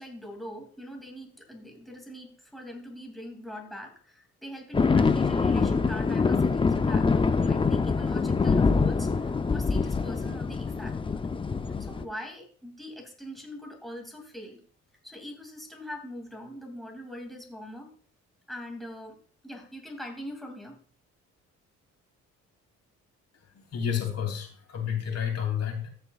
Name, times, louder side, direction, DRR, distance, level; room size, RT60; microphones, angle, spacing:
voice 1, 0.0-11.2 11.8-14.6 15.0-17.9 18.5-19.2 19.4-20.8, equal, ahead, 2 dB, 2.5 m, -42 dB
sound 1, 4.7-12.0, left 4 dB, 15° left, 0.5 m, -24 dB
voice 2, 23.7-25.9, left 8 dB, 60° left, 3 dB, 2.9 m, -30 dB
14.5 x 6.7 x 2.4 m, 0.42 s
cardioid pair, 90°, 30 cm